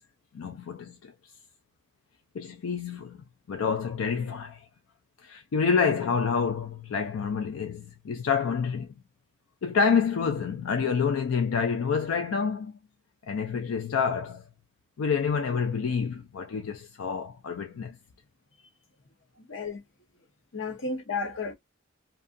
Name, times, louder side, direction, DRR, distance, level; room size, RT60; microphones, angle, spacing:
voice 1, 0.3-1.1 2.3-4.6 5.2-8.9 9.6-12.8 13.2-14.4 15.0-18.0, left 6 dB, 90° left, 0.4 m, -28 dB
voice 2, 19.5-19.8 20.5-21.5, left 4 dB, 75° left, 0.8 m, -32 dB
2.6 x 2.3 x 2.5 m
head